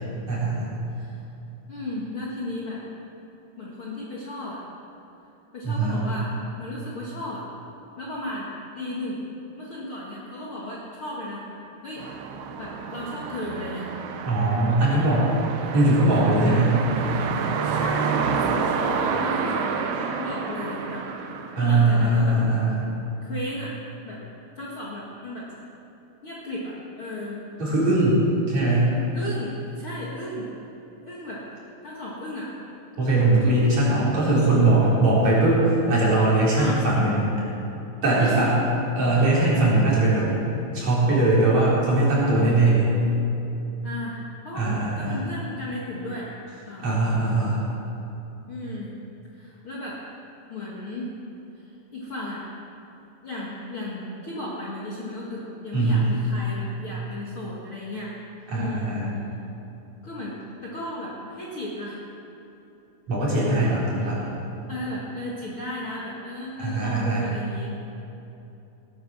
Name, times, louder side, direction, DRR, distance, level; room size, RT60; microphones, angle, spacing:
voice 1, 0.3-0.7 5.6-6.1 14.2-15.3 15.7-16.8 21.6-22.9 27.6-28.9 33.0-37.3 38.0-38.6 39.0-40.3 40.7-42.9 44.5-45.2 46.8-47.7 55.7-56.1 58.5-59.1 63.1-64.3 66.6-67.3, right 2 dB, 35° right, -7 dB, 5.3 m, -20 dB
voice 2, 0.9-1.2 1.7-2.8 3.6-4.7 5.5-7.5 8.0-9.2 9.6-12.0 12.6-13.9 17.6-19.9 20.2-21.0 21.5-22.4 23.2-23.7 24.0-24.2 24.5-25.5 26.2-27.4 29.1-30.5 31.0-31.4 31.8-32.5 36.5-36.8 38.2-38.5 43.8-46.3 46.6-46.8 48.5-48.9 49.3-50.0 50.5-51.1 51.5-52.4 53.2-58.1 58.5-58.9 60.0-62.0 64.7-67.7, left 1 dB, 75° left, -5 dB, 1.2 m, -35 dB
sound 1, 12.0-22.2, right 5 dB, 80° right, 3.4 m, -29 dB
18.5 x 11.5 x 6.3 m, 2.9 s
omnidirectional pair, 5.5 m